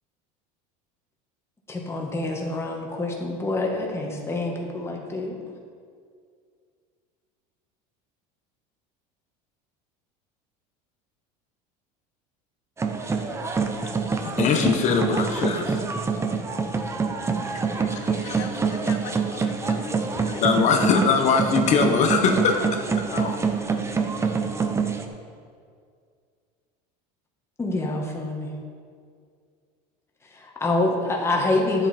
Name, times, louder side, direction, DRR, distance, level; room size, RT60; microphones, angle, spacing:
voice 1, 1.7-5.4 27.6-28.5 30.3-31.9, left 2 dB, 15° left, 0 dB, 1.6 m, -26 dB
sound 1, 12.8-25.0, right 5 dB, 15° right, 0.8 m, -26 dB
voice 2, 14.1-15.8 17.7-18.5 20.1-23.5, left 5 dB, 40° left, 4 dB, 1.1 m, -23 dB
voice 3, 17.7-21.1, left 8 dB, 60° left, 5 dB, 0.6 m, -41 dB
11.5 x 7.6 x 4.4 m, 2.1 s
supercardioid pair, 135°, 18 cm